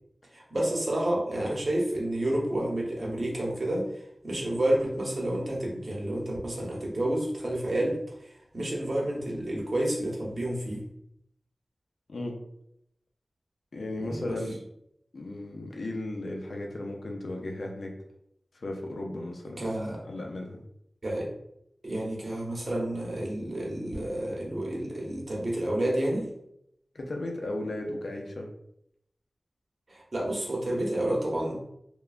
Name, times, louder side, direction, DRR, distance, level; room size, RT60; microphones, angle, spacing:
voice 1, 0.3-10.8 14.0-14.4 19.6-20.0 21.0-21.3 21.8-26.3 29.9-31.7, right 1 dB, 45° right, -3 dB, 0.8 m, -30 dB
voice 2, 13.7-14.6 15.1-17.9 18.5-19.7 20.1-20.6 26.9-28.5, left 1 dB, 70° left, 1 dB, 0.5 m, -35 dB
3.0 x 2.2 x 2.4 m, 0.76 s
wide cardioid pair, 100°, 0 cm